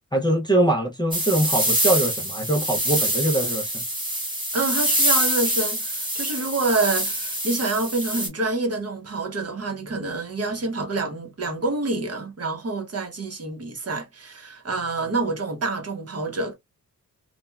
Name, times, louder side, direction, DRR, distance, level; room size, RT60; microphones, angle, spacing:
voice 1, 0.1-3.7, right 1 dB, 10° left, 0.5 m, -22 dB
sound 1, 1.1-8.3, right 1 dB, 15° right, 1.1 m, -25 dB
voice 2, 4.5-16.5, right 3 dB, 45° right, 0.8 m, -27 dB
3.1 x 2.1 x 2.2 m
wide cardioid pair, 160°, 35 cm